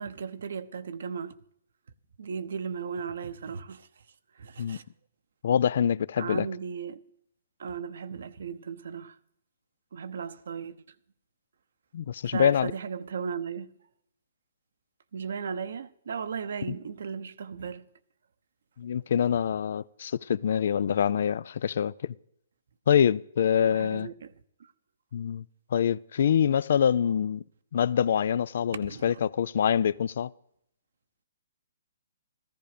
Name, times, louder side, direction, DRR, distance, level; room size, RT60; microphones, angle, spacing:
voice 1, 0.0-1.3 2.2-4.0 4.3-4.8 6.2-7.0 7.6-9.2 9.9-10.8 12.2-13.7 15.1-17.9 23.6-24.3 24.6-24.7 28.7-29.2, right 6 dB, 70° right, 1.0 m, -36 dB
voice 2, 5.4-6.5 11.9-12.7 18.8-22.1 22.9-24.1 25.1-25.4 25.7-27.4 27.7-30.3, left 8 dB, 60° left, 0.5 m, -25 dB
14.5 x 14.0 x 5.1 m
hypercardioid pair, 150°, 0 cm